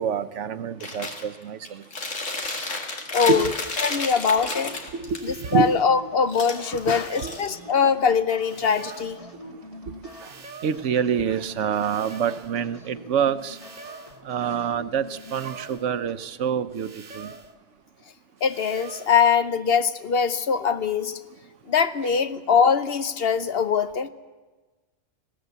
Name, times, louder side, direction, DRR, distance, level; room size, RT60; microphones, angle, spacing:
voice 1, 0.0-1.8 3.3-3.5 4.5-4.6 4.9-5.7 7.2-7.4 10.6-13.6 14.2-16.9 17.1-17.3, right 7 dB, 75° right, 1.1 m, -26 dB
Chewing mastication, 0.8-1.2 1.7-5.2 6.3-7.8, left 3 dB, 90° left, 2.6 m, -32 dB
sound 1, 2.4-2.6 3.4-4.2 5.1-5.9 6.7-7.6 8.4-9.2 10.1-10.9 11.7-12.6 13.4-14.2 15.1-15.9 16.7-17.6 18.4-19.1, right 4 dB, 40° right, 1.3 m, -44 dB
voice 2, 3.1-3.5 3.8-4.7 5.2-9.3 18.4-21.2 21.7-24.1, left 6 dB, 55° left, 0.9 m, -22 dB
sound 2, 5.5-16.1, left 1 dB, 30° left, 2.2 m, -45 dB
20.5 x 16.0 x 8.0 m
omnidirectional pair, 1.2 m